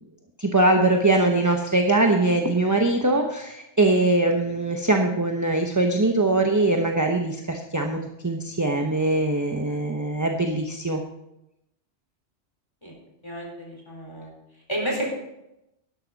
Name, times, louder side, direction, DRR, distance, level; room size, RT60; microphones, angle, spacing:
voice 1, 0.4-11.0, right 2 dB, 15° right, 3 dB, 0.8 m, -22 dB
voice 2, 13.2-14.3 14.7-15.1, right 1 dB, 20° left, -2 dB, 4.2 m, -31 dB
12.0 x 11.5 x 4.0 m, 0.87 s
omnidirectional pair, 1.2 m